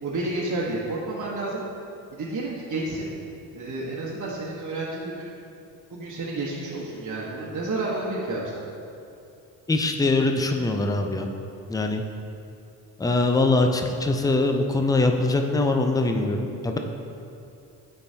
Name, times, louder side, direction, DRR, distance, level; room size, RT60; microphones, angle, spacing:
voice 1, 0.0-1.6 2.1-3.1 3.5-5.3 5.9-8.5, right 2 dB, 40° right, -6 dB, 1.3 m, -30 dB
voice 2, 9.7-11.3 11.7-12.0 13.0-16.8, left 2 dB, 10° left, 4 dB, 0.5 m, -22 dB
9.4 x 4.4 x 2.8 m, 2.6 s
hypercardioid pair, 60°, 46 cm